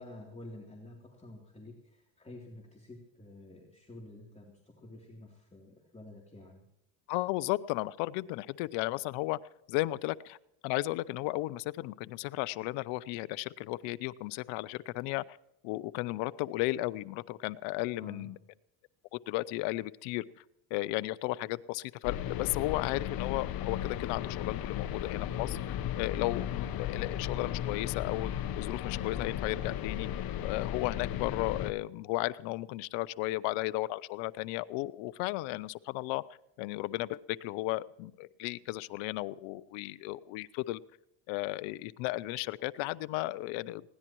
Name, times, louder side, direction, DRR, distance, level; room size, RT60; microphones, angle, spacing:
voice 1, 0.0-6.6 18.0-18.3, left 2 dB, 15° left, -2 dB, 3.2 m, -50 dB
voice 2, 7.1-9.4 9.7-10.4 10.6-15.4 15.6-18.4 19.1-20.2 20.7-28.3 28.6-30.1 30.4-36.2 36.6-40.8 41.3-43.8, left 19 dB, 85° left, 16 dB, 0.7 m, -34 dB
sound 1, 22.0-31.7, left 11 dB, 55° left, 1.1 m, -35 dB
21.0 x 16.5 x 3.1 m, 0.79 s
supercardioid pair, 90°, 44 cm